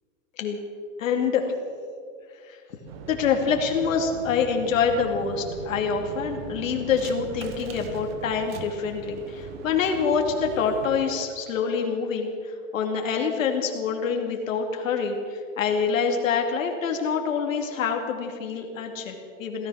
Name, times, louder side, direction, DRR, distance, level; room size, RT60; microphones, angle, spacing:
voice 1, 1.0-1.4 2.4-2.6 3.1-19.7, left 6 dB, 75° left, 3 dB, 2.6 m, -26 dB
sound 1, 2.9-11.0, right 6 dB, 50° right, 1.6 m, -40 dB
16.5 x 14.0 x 6.3 m, 2.2 s
supercardioid pair, 170°, 40 cm